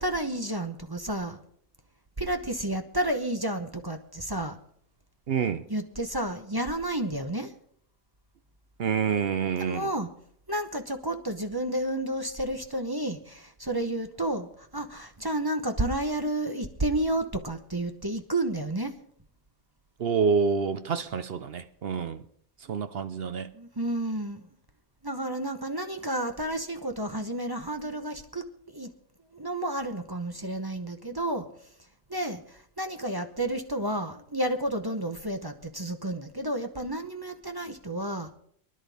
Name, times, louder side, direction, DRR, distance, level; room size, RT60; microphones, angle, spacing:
voice 1, 0.0-1.4 2.2-4.6 5.7-7.5 9.6-10.1 10.5-14.5 14.7-18.9 23.5-24.4 25.0-28.9 29.3-31.5 32.1-32.4 32.8-38.3, right 1 dB, 20° right, 0.8 m, -31 dB
voice 2, 5.3-5.6 8.8-9.9 20.0-22.2 22.7-23.5, right 6 dB, 55° right, 0.7 m, -27 dB
24.0 x 11.0 x 3.5 m
omnidirectional pair, 1.5 m